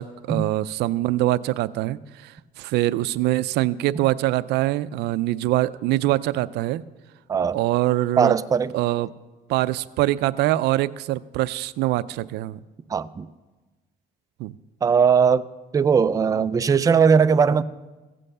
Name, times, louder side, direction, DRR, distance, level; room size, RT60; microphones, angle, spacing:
voice 1, 0.0-6.8 7.5-8.4 8.7-9.1 9.5-12.6 14.4-14.5, right 16 dB, 85° right, 0.4 m, -24 dB
voice 2, 8.2-8.7 12.9-13.3 14.8-15.4 15.7-17.6, right 6 dB, 20° right, 0.4 m, -19 dB
15.5 x 7.6 x 6.6 m
cardioid pair, 110°, 17 cm